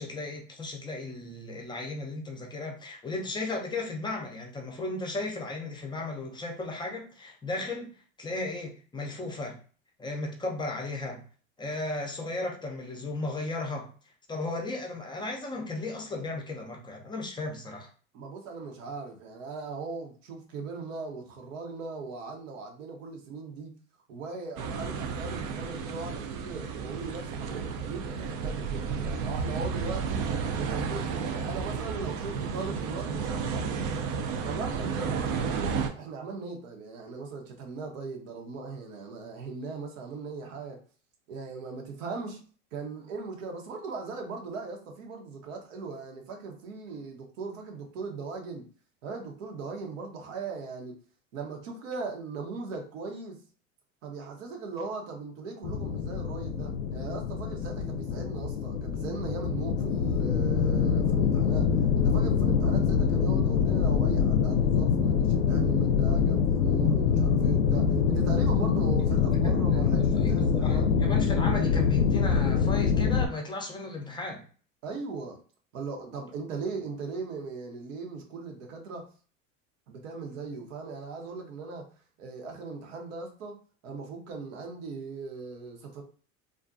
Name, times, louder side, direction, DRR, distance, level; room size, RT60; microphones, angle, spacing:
voice 1, 0.0-9.6 10.0-11.2 11.6-13.9 14.3-17.9 69.2-74.4, left 2 dB, 10° left, 0.5 m, -35 dB
voice 2, 18.1-23.8 24.1-30.3 30.6-33.9 34.4-40.8 41.3-42.4 42.7-48.7 49.0-51.0 51.3-53.4 54.0-70.9 74.8-75.4 75.7-79.1 79.9-81.9 82.2-86.0, right 4 dB, 80° right, 0.9 m, -39 dB
sound 1, 24.6-35.9, right 5 dB, 55° right, 0.5 m, -32 dB
sound 2, 55.6-73.3, left 6 dB, 80° left, 0.5 m, -25 dB
2.5 x 2.2 x 2.5 m
hypercardioid pair, 100°, 38 cm